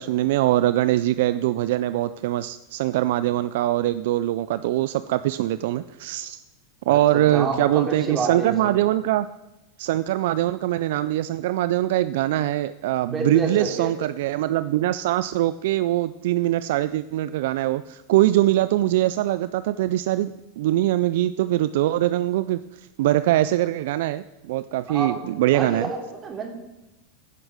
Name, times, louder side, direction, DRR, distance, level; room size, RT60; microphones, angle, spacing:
voice 1, 0.0-6.4 6.9-9.3 9.8-22.6 23.0-25.9, right 14 dB, 65° right, 14 dB, 0.3 m, -22 dB
voice 2, 6.9-8.8 13.0-14.0 24.9-25.2 25.5-26.5, right 4 dB, 30° right, 1 dB, 3.1 m, -29 dB
15.5 x 6.1 x 5.0 m, 0.99 s
hypercardioid pair, 95°, 0 cm